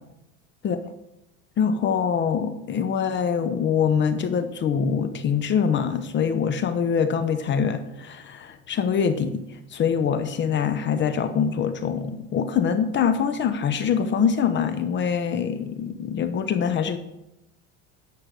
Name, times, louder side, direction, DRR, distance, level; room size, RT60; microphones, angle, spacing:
voice 1, 1.6-17.0, left 7 dB, 35° left, 10 dB, 0.8 m, -24 dB
10.0 x 6.6 x 6.3 m, 0.88 s
supercardioid pair, 125°, 31 cm